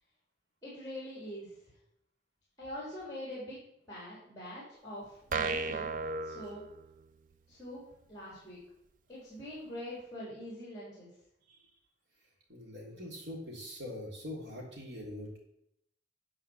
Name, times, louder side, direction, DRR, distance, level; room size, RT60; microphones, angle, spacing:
voice 1, 0.6-1.5 2.6-3.6 3.9-5.9 6.2-6.6 7.5-7.8 8.1-8.6 9.1-11.1, left 1 dB, 20° left, -5 dB, 3.4 m, -43 dB
sound 1, 5.3-7.2, right 4 dB, 45° right, 0.5 m, -35 dB
voice 2, 12.5-15.4, left 1 dB, 75° right, -2 dB, 3.2 m, -43 dB
9.6 x 4.9 x 7.1 m, 0.75 s
head